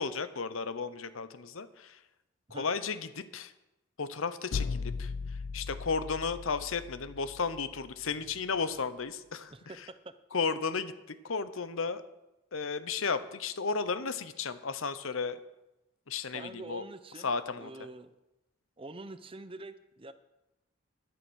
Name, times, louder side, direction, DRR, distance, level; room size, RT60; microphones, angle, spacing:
voice 1, 0.0-2.0 2.5-3.5 4.0-9.9 10.3-12.0 12.5-15.4 16.1-16.9 17.1-17.9, left 5 dB, 70° left, 13 dB, 0.8 m, -34 dB
sound 1, 4.5-8.4, left 4 dB, 50° left, 0.3 m, -38 dB
voice 2, 16.3-17.3 17.6-18.1 18.8-20.1, right 2 dB, 25° right, 12 dB, 0.7 m, -45 dB
11.5 x 11.5 x 6.3 m, 0.96 s
head